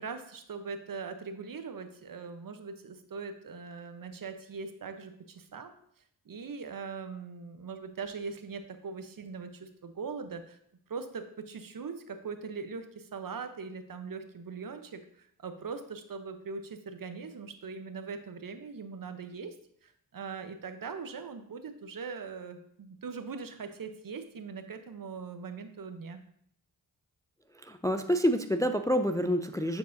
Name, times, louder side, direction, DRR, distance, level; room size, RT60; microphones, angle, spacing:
voice 1, 0.0-5.7 6.3-10.6 10.9-19.6 19.8-26.2, right 5 dB, 55° right, 8 dB, 0.8 m, -41 dB
voice 2, 27.5-29.8, equal, 10° left, 7 dB, 0.4 m, -28 dB
9.4 x 4.6 x 2.6 m, 0.69 s
cardioid pair, 55°, 41 cm